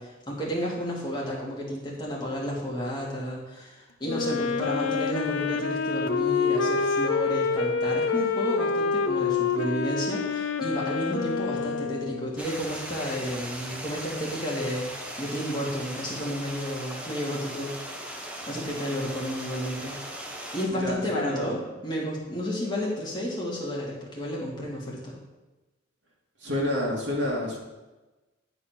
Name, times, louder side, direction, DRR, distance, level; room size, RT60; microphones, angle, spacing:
voice 1, 0.0-17.7 18.5-20.0 20.5-25.2, equal, 20° left, -4 dB, 2.0 m, -32 dB
Wind instrument woodwind instrument, 4.0-12.4, left 5 dB, 85° left, 0.6 m, -27 dB
Stream, 12.4-20.7, right 1 dB, 5° right, 0.8 m, -38 dB
voice 2, 20.7-21.5 26.4-27.6, left 1 dB, 60° right, -2 dB, 2.0 m, -29 dB
9.7 x 4.1 x 5.8 m, 1.1 s
head